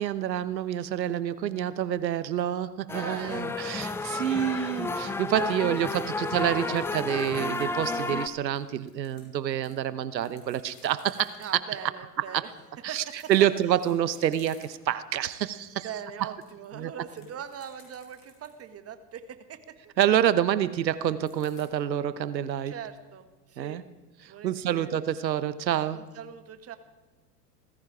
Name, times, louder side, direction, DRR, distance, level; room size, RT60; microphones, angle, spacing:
voice 1, 0.0-11.4 12.3-12.4 12.8-15.9 16.8-16.9 20.0-22.7 23.6-23.8 24.2-26.0, right 10 dB, 85° right, 15 dB, 1.0 m, -27 dB
sound 1, 2.9-8.3, left 3 dB, 5° left, 0.4 m, -32 dB
voice 2, 2.9-4.8 5.4-6.8 11.4-12.5 12.9-13.5 15.7-19.9 22.6-23.8 24.3-25.0 25.9-26.8, right 8 dB, 30° right, 9 dB, 1.6 m, -42 dB
sound 2, 6.6-7.6 7.9-8.0 8.6-9.7 10.1-11.5 12.9-15.0 15.4-15.6 15.9-18.7 21.2-21.7, left 5 dB, 65° left, 6.0 m, -57 dB
17.0 x 15.0 x 4.9 m, 1.2 s
hypercardioid pair, 95°, 50 cm